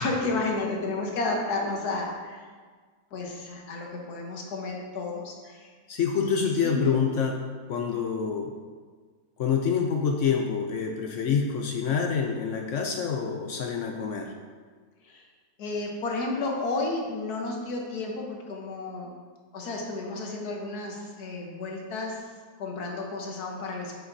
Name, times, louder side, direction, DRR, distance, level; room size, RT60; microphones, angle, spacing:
voice 1, 0.0-2.4 3.1-5.7 6.2-7.1 15.0-15.3 15.6-19.1 19.5-22.2 22.6-24.0, left 3 dB, 80° left, 0 dB, 1.6 m, -32 dB
voice 2, 5.9-8.6 9.4-14.3, left 6 dB, 65° left, 3 dB, 0.8 m, -27 dB
8.8 x 6.5 x 2.7 m, 1.5 s
omnidirectional pair, 1.6 m